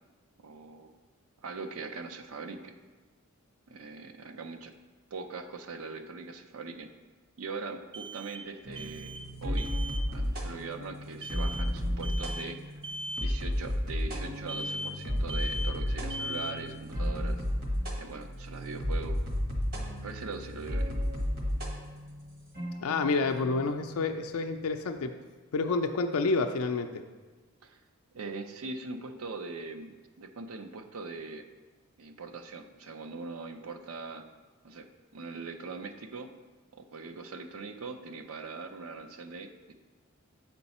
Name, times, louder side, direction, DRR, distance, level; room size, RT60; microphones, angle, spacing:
voice 1, 0.4-0.9 1.4-2.7 3.7-4.7 5.1-6.9 7.4-9.1 9.4-9.7 10.1-12.8 13.2-17.4 18.0-19.2 20.0-20.9 27.6-27.8 28.1-31.5 32.0-34.3 34.6-34.9 35.1-36.3 36.7-39.7, right 4 dB, 75° right, 7 dB, 0.6 m, -41 dB
sound 1, 4.7-4.8 7.9-9.3 9.6-10.1 11.2-11.7 12.0-12.5 12.8-13.3 14.5-15.0 15.3-15.8 16.1-16.7, equal, 20° right, 0.4 m, -38 dB
sound 2, 8.7-24.9, equal, 45° right, 1.2 m, -33 dB
voice 2, 22.8-25.1 25.5-26.9, left 3 dB, 80° left, 5 dB, 0.4 m, -29 dB
7.9 x 4.5 x 4.2 m, 1.3 s
head